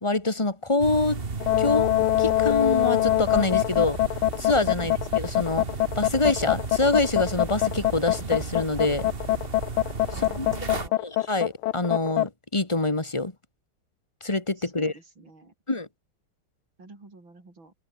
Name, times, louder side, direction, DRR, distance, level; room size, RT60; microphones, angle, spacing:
voice 1, 0.0-1.2 1.6-1.9 2.2-4.0 4.4-5.7 6.0-9.1 10.4-10.5 11.0-13.3 14.2-14.9 15.7-15.9, left 2 dB, 15° left, 2.4 m, -25 dB
sound 1, 0.8-10.9, right 4 dB, 30° right, 1.8 m, -34 dB
sound 2, 1.4-12.3, left 15 dB, 85° left, 1.6 m, -23 dB
voice 2, 10.1-11.0 14.6-15.5 16.8-17.7, right 3 dB, 70° right, 7.3 m, -46 dB
omnidirectional pair, 2.2 m